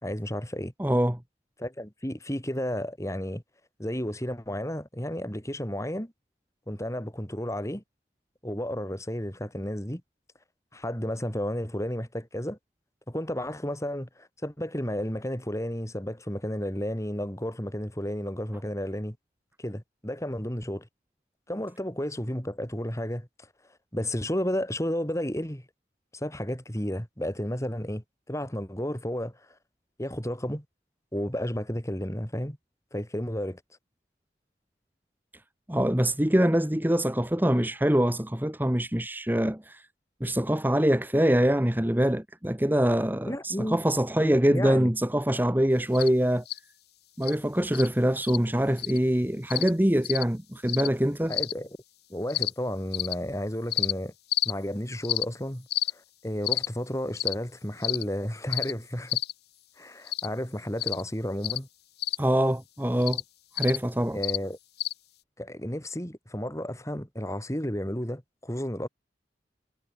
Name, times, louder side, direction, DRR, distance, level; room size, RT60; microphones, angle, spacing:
voice 1, 0.0-0.7 1.6-3.4 3.8-6.1 6.7-7.8 8.4-10.0 10.7-12.6 13.1-19.2 19.6-20.9 21.5-23.5 23.9-25.7 26.1-29.3 30.0-30.6 31.1-32.6 32.9-33.6 43.2-43.8 44.2-44.9 51.3-51.8 52.1-54.1 54.5-55.7 55.9-59.2 59.8-61.7 64.1-64.6 65.4-68.9, equal, 15° left, 3.9 m, -32 dB
voice 2, 0.8-1.2 35.7-39.9 40.2-46.4 47.2-51.3 62.2-63.2 63.6-64.2, equal, 10° right, 1.2 m, -24 dB
sound 1, 45.9-46.1 46.5-46.6 47.2-47.3 47.7-47.9 48.2-48.4 48.8-49.0 49.5-49.7 50.0-50.2 50.7-50.9 51.3-51.5 52.3-52.5 52.9-53.1 53.7-53.9 54.3-54.5 55.0-55.2 55.7-55.9 56.4-56.7 57.2-57.3 57.8-58.0 58.5-58.7 59.1-59.3 60.1-60.3 60.8-61.0 61.4-61.6 62.0-62.2 63.0-63.2 63.6-63.8 64.2-64.4 64.8-64.9, left 14 dB, 60° left, 4.1 m, -29 dB
head